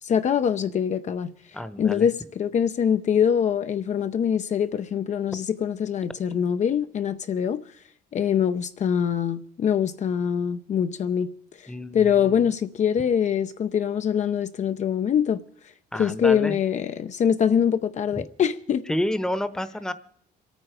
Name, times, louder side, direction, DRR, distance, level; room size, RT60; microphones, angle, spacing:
voice 1, 0.0-1.3 1.8-7.6 8.1-11.3 11.6-15.4 15.9-18.8, left 8 dB, 45° left, 0.7 m, -24 dB
voice 2, 1.5-2.1 11.7-12.3 15.9-16.6 18.1-18.2 18.9-19.9, left 1 dB, 5° left, 1.0 m, -29 dB
27.0 x 9.2 x 5.0 m
cardioid pair, 110°, 17 cm